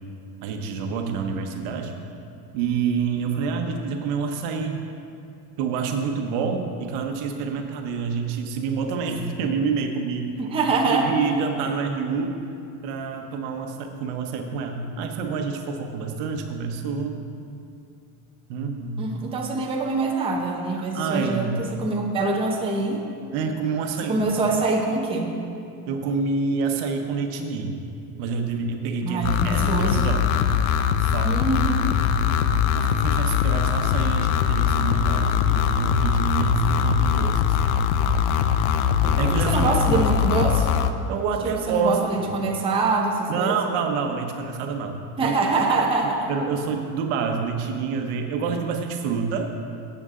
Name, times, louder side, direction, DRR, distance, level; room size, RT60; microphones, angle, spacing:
voice 1, 0.4-1.9 2.5-4.8 5.6-10.2 10.7-12.4 12.8-17.2 18.5-19.0 20.8-21.5 23.3-24.3 25.9-27.8 28.2-30.3 31.0-31.9 32.7-37.7 39.0-40.1 41.1-42.0 43.3-45.4 46.0-49.5, right 5 dB, 70° right, 4 dB, 1.1 m, -27 dB
voice 2, 10.4-11.1 19.0-23.0 24.1-25.4 29.0-30.0 31.2-31.9 39.5-40.7 41.4-43.5 45.2-46.3, right 3 dB, 10° right, -1 dB, 0.7 m, -24 dB
sound 1, 29.2-40.9, left 8 dB, 70° left, 0.6 m, -22 dB
12.0 x 7.9 x 3.7 m, 2.5 s
cardioid pair, 155°, 45 cm